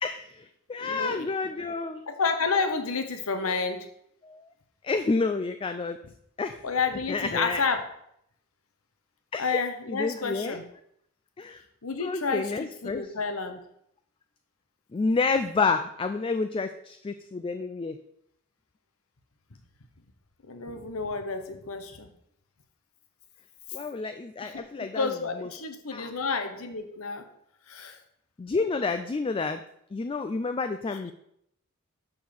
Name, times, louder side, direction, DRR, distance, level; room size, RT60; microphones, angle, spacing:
voice 1, 0.0-2.1 4.2-4.5 4.8-6.0 6.4-6.6 7.1-7.6 9.3-9.6 9.9-10.6 11.4-11.6 12.0-13.1 14.9-18.0 23.7-25.5 25.9-26.1 28.4-29.6 29.9-31.1, left 4 dB, 25° left, 8 dB, 0.3 m, -29 dB
voice 2, 0.8-1.3 2.1-3.9 6.6-7.8 9.4-10.6 11.8-13.6 20.5-22.1 24.4-27.3 27.7-28.0 30.9-31.1, left 4 dB, 85° left, 7 dB, 1.0 m, -30 dB
6.7 x 5.5 x 5.9 m, 0.74 s
head